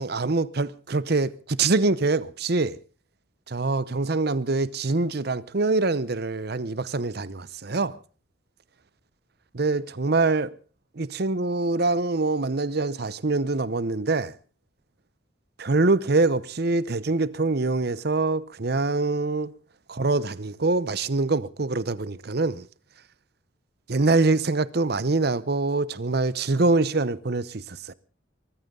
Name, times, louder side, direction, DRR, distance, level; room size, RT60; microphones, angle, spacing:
voice 1, 0.0-2.8 3.5-8.0 9.5-10.5 11.0-14.3 15.6-19.5 19.9-22.6 23.9-27.9, right 3 dB, 55° right, 0.8 m, -24 dB
23.5 x 14.5 x 3.8 m
head